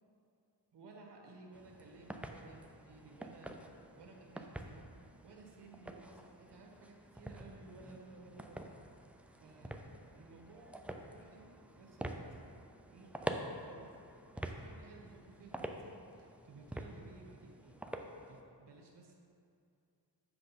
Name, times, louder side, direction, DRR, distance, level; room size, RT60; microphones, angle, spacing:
voice 1, 0.7-12.3 12.9-17.8 18.3-19.1, right 3 dB, 70° right, 0 dB, 1.4 m, -57 dB
sound 1, 1.5-18.4, right 1 dB, 5° right, 0.4 m, -47 dB
7.7 x 6.3 x 4.1 m, 2.5 s
cardioid pair, 90°, 42 cm